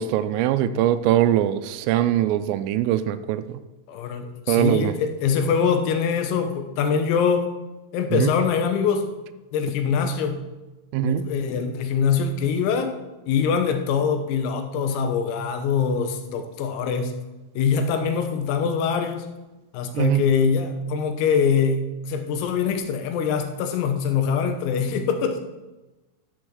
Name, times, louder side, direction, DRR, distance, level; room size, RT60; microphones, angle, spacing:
voice 1, 0.0-3.4 4.5-4.9 8.1-8.3 10.9-11.3 19.9-20.2, right 12 dB, 85° right, 11 dB, 3.1 m, -22 dB
voice 2, 3.9-7.5 7.9-9.1 9.5-10.4 11.0-12.9 13.3-17.1 17.6-19.3 19.7-25.4, left 6 dB, 85° left, 7 dB, 3.9 m, -23 dB
13.5 x 6.3 x 6.2 m, 1.1 s
omnidirectional pair, 6.0 m